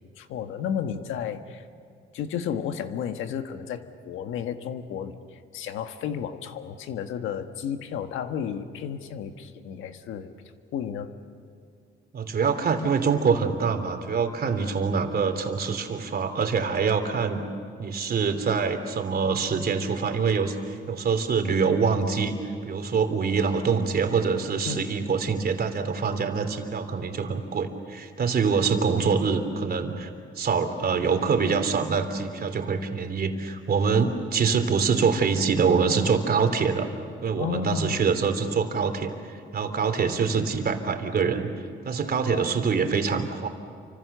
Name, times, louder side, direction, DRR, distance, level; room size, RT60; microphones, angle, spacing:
voice 1, 0.2-1.6 2.1-10.3 10.7-11.1 14.4-14.6 24.7-24.8 37.4-38.1, left 8 dB, 85° left, 7 dB, 1.6 m, -32 dB
voice 2, 12.1-17.4 17.8-36.9 37.2-41.5 41.8-43.5, right 5 dB, 50° right, 6 dB, 3.2 m, -25 dB
29.0 x 26.0 x 6.9 m, 2.3 s
cardioid pair, 90°, 20 cm